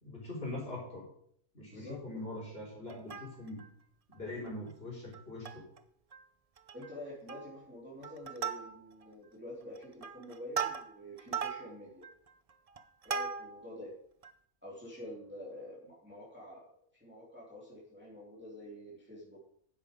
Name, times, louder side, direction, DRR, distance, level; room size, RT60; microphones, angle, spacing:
voice 1, 0.0-1.1 1.5-3.6 4.1-5.6, left 2 dB, 40° left, -5 dB, 3.9 m, -42 dB
Plucked string instrument, 2.9-3.7 4.1-4.2 4.5-4.7 5.1-5.8 6.1-6.2 6.6-6.9 7.3-7.7 8.0-9.1 9.6-13.7 14.2-14.3, right 6 dB, 60° right, 0.4 m, -39 dB
voice 2, 6.7-12.0 13.0-13.9 14.6-16.7 16.9-19.4, left 1 dB, 5° right, -5 dB, 2.8 m, -47 dB
9.9 x 7.4 x 5.2 m, 0.65 s
omnidirectional pair, 1.5 m